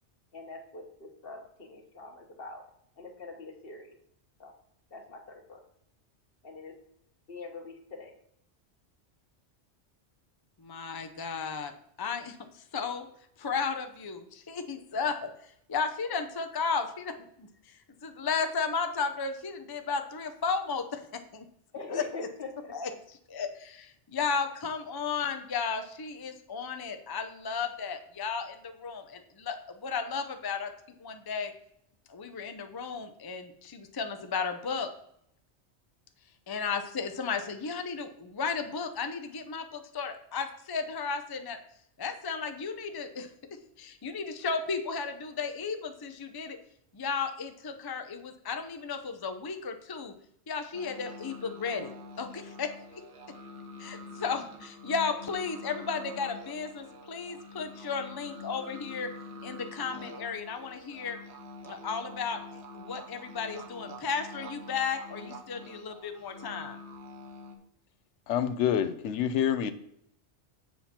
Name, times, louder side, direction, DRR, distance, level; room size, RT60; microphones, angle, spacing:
voice 1, 0.3-2.6 3.0-3.9 4.4-4.5 4.9-5.6 6.4-6.7 7.3-8.1 21.7-22.7, left 3 dB, 55° left, 3 dB, 1.5 m, -43 dB
voice 2, 10.6-11.7 12.0-13.1 13.4-15.3 15.7-17.5 18.0-21.4 21.9-22.0 22.7-30.7 31.0-31.5 32.1-34.9 36.5-41.6 42.0-43.3 43.8-46.6 46.9-50.1 50.5-51.9 52.2-52.7 53.8-59.1 59.4-61.2 61.6-66.8, left 5 dB, 25° left, 7 dB, 0.5 m, -34 dB
sound 1, 50.7-67.6, left 1 dB, 75° right, 1.3 m, -46 dB
voice 3, 68.3-69.7, left 9 dB, 90° left, 11 dB, 0.9 m, -27 dB
7.5 x 5.8 x 4.3 m, 0.71 s
omnidirectional pair, 1.2 m